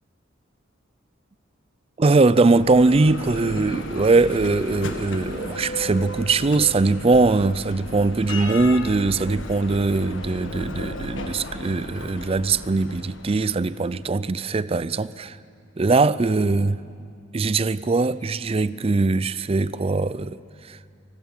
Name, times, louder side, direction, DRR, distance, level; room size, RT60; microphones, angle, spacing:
voice 1, 2.0-15.4 15.8-16.8 17.3-20.4 20.7-20.8, right 3 dB, 30° right, 0.4 m, -21 dB
Bell, 2.3-14.0, left 1 dB, 70° left, 1.6 m, -35 dB
24.5 x 18.5 x 7.3 m
head